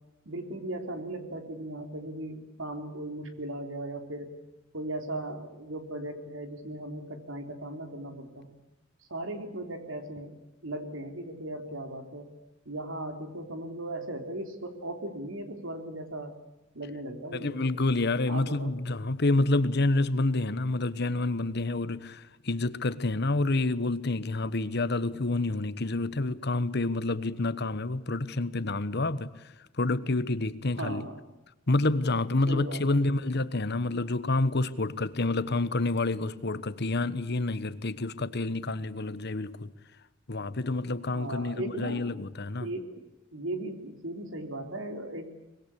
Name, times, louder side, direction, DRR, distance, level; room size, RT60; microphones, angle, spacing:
voice 1, 0.3-4.3 4.7-8.5 9.1-10.3 10.6-12.3 12.7-16.3 16.7-17.7 18.3-18.8 30.8-31.3 32.5-33.2 41.1-42.0 42.6-43.0 43.3-45.3, right 1 dB, 80° right, 3.8 m, -37 dB
voice 2, 17.3-29.3 29.8-31.0 31.7-39.7 40.3-42.7, left 2 dB, 55° left, 1.2 m, -28 dB
24.0 x 21.5 x 8.5 m
head